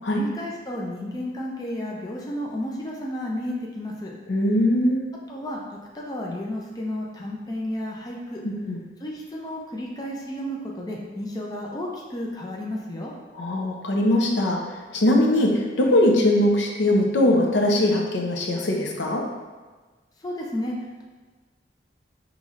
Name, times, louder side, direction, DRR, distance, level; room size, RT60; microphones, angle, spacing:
voice 1, 0.1-4.1 5.3-8.4 9.0-13.1 20.2-21.0, left 1 dB, 20° left, -2 dB, 0.4 m, -32 dB
voice 2, 4.3-5.1 8.4-8.8 13.3-19.2, left 1 dB, 80° left, 1 dB, 0.6 m, -21 dB
5.3 x 3.1 x 2.4 m, 1.3 s
head